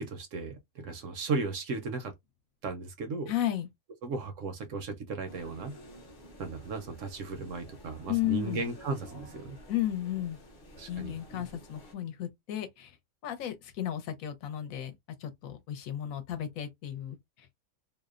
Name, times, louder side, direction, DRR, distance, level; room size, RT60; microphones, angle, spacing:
voice 1, 0.0-2.1 2.6-3.3 4.0-5.7 6.4-9.6 10.8-11.5, right 4 dB, 70° right, 0.8 m, -36 dB
voice 2, 3.3-3.7 8.1-8.6 9.7-10.4 10.9-12.9 13.2-14.9 15.2-17.5, left 12 dB, 75° left, 1.0 m, -34 dB
sound 1, 5.3-11.9, equal, 50° left, 0.6 m, -51 dB
2.6 x 2.0 x 2.3 m
omnidirectional pair, 1.5 m